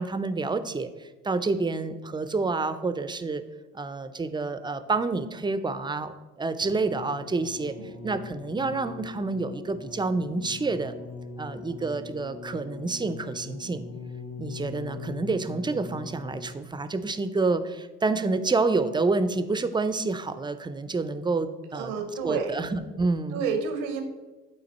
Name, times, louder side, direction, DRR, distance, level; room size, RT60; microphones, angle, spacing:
voice 1, 0.0-3.4 3.7-7.7 8.0-10.9 11.4-13.8 14.4-21.9 22.2-23.4, right 3 dB, 15° right, 12 dB, 0.4 m, -28 dB
sound 1, 6.6-16.7 17.5-17.6, left 4 dB, 50° left, 1.0 m, -41 dB
voice 2, 21.7-22.7 23.3-24.0, right 5 dB, 85° right, 7 dB, 0.9 m, -30 dB
8.7 x 3.8 x 4.1 m, 1.2 s
supercardioid pair, 70°, 33 cm